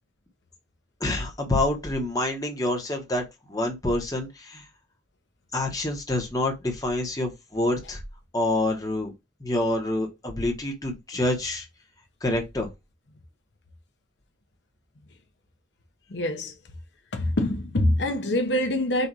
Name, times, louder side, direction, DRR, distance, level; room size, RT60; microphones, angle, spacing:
voice 1, 1.0-4.6 5.5-8.0 8.3-9.1 9.4-11.7 12.2-12.7, left 1 dB, 20° left, 1.2 m, -27 dB
voice 2, 16.1-16.5 17.1-19.1, left 1 dB, 70° left, 0.8 m, -24 dB
4.1 x 2.6 x 4.7 m
head